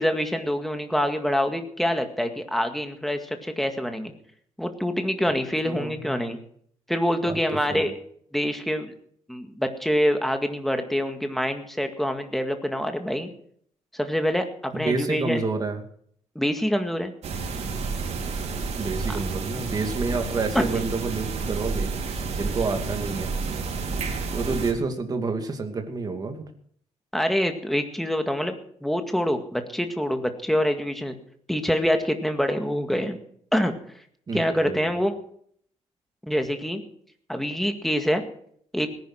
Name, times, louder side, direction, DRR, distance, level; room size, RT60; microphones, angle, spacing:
voice 1, 0.0-4.1 4.6-6.4 6.9-7.9 8.3-8.9 9.3-13.3 13.9-15.4 16.4-17.1 20.5-20.8 27.1-28.6 28.8-31.2 31.5-33.2 33.5-33.7 34.3-35.1 36.2-36.8 37.3-38.2 38.7-38.9, equal, ahead, 6 dB, 1.9 m, -25 dB
voice 2, 5.6-6.2 7.2-7.4 7.7-7.9 14.7-15.8 18.7-23.3 24.3-26.4 34.3-34.9, right 4 dB, 30° right, 5 dB, 2.6 m, -29 dB
sound 1, 17.2-24.7, right 4 dB, 60° right, 4.5 m, -30 dB
18.5 x 10.5 x 6.3 m, 0.63 s
cardioid pair, 135°, 12 cm